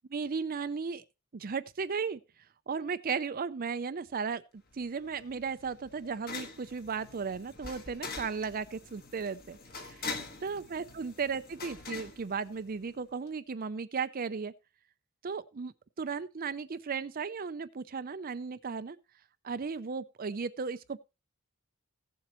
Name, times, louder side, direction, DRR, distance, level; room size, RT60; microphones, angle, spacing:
voice 1, 0.1-1.0 1.3-2.2 2.7-10.1 10.4-14.5 15.2-19.0 19.4-21.0, right 5 dB, 40° right, 0.5 m, -35 dB
sound 1, 4.7-13.0, left 4 dB, 40° left, 1.5 m, -44 dB
16.0 x 7.4 x 3.0 m
head